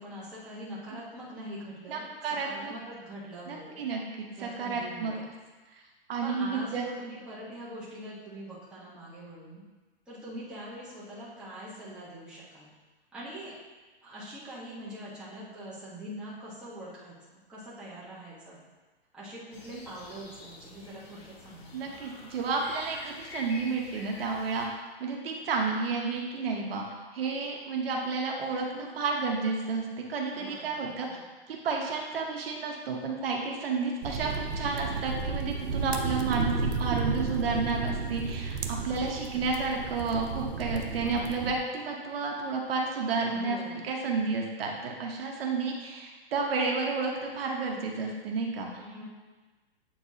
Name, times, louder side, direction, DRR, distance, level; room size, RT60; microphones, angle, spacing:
voice 1, 0.0-3.8 4.4-5.3 6.2-9.6 10.1-12.7 13.1-13.5 14.0-18.6 19.1-21.9 30.3-31.2 41.0-41.4 43.3-43.8 48.8-49.0, right 1 dB, 5° right, -10 dB, 1.3 m, -43 dB
voice 2, 1.9-2.7 3.5-5.1 6.1-6.9 21.7-24.7 25.0-26.8 27.1-31.1 31.5-48.8, right 4 dB, 65° right, 0 dB, 1.1 m, -31 dB
sound 1, 19.5-24.7, left 3 dB, 70° left, 1.2 m, -47 dB
sound 2, 34.0-41.6, right 4 dB, 80° right, 0.7 m, -33 dB
7.9 x 4.5 x 2.8 m, 1.3 s
hypercardioid pair, 155°, 32 cm